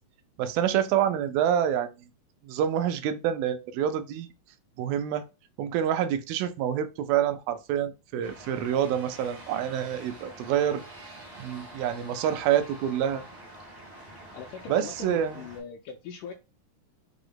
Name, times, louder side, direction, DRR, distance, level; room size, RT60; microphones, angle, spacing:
voice 1, 0.4-1.9 2.4-4.3 4.8-5.2 5.6-10.8 11.4-13.2 14.7-15.4, right 9 dB, 90° right, 2.4 m, -27 dB
sound 1, 8.2-15.6, right 1 dB, 65° right, 0.4 m, -46 dB
voice 2, 14.3-16.3, left 7 dB, 80° left, 1.9 m, -40 dB
5.8 x 2.1 x 3.7 m
omnidirectional pair, 4.1 m